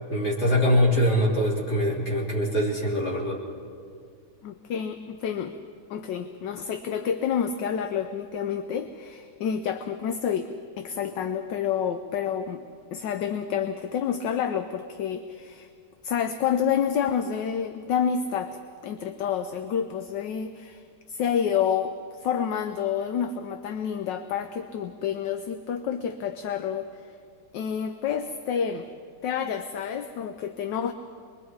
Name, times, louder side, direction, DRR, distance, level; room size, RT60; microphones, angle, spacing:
voice 1, 0.1-3.4, equal, 30° left, -4 dB, 3.8 m, -23 dB
voice 2, 4.4-5.6 5.9-10.5 10.8-12.6 12.9-15.7 16.0-18.6 18.8-20.8 21.1-27.1 27.5-28.9 29.2-30.9, left 8 dB, 70° left, 8 dB, 1.3 m, -29 dB
26.0 x 22.0 x 4.7 m, 2.2 s
omnidirectional pair, 2.2 m